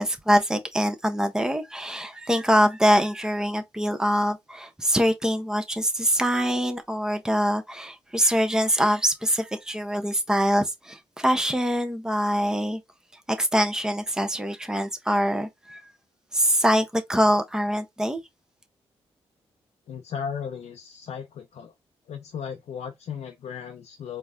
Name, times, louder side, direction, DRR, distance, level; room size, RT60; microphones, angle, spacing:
voice 1, 0.0-12.8 13.4-15.8 16.3-18.2, equal, 5° right, 1.0 m, -24 dB
voice 2, 19.9-21.7 22.1-24.2, left 7 dB, 75° left, 0.7 m, -36 dB
4.1 x 2.2 x 3.6 m
cardioid pair, 70°, 11 cm